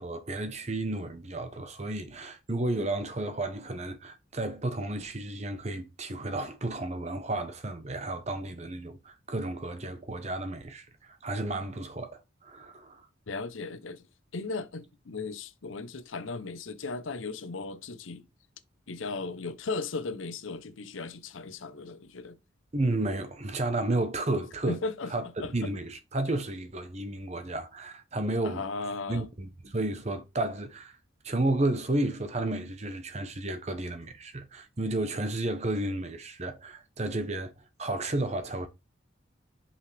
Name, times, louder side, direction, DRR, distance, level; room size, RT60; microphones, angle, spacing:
voice 1, 0.0-13.1 22.7-24.8 25.1-25.3 25.5-28.6 29.1-31.0 31.2-37.5 37.8-38.7, right 2 dB, 35° right, 0.9 m, -32 dB
voice 2, 13.3-14.1 14.3-18.3 18.9-22.4 24.7-25.1 25.4-25.7 28.4-29.3, left 3 dB, 85° left, 0.7 m, -36 dB
5.6 x 5.5 x 3.3 m
head